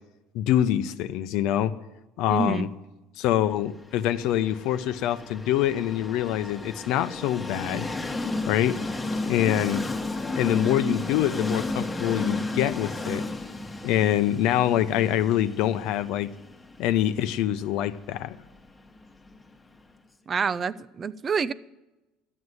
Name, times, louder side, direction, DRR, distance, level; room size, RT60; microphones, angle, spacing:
voice 1, 0.3-1.7 2.2-2.7 3.2-7.9 8.5-8.8 9.2-9.9 10.3-13.2 13.8-16.3 16.8-18.4, left 12 dB, 70° left, 13 dB, 0.7 m, -25 dB
voice 2, 2.3-2.7 20.3-21.5, right 6 dB, 30° right, 17 dB, 0.5 m, -27 dB
Train, 4.0-19.8, left 2 dB, 15° left, 1.3 m, -33 dB
12.0 x 8.0 x 9.6 m, 1.0 s
supercardioid pair, 110°, 0 cm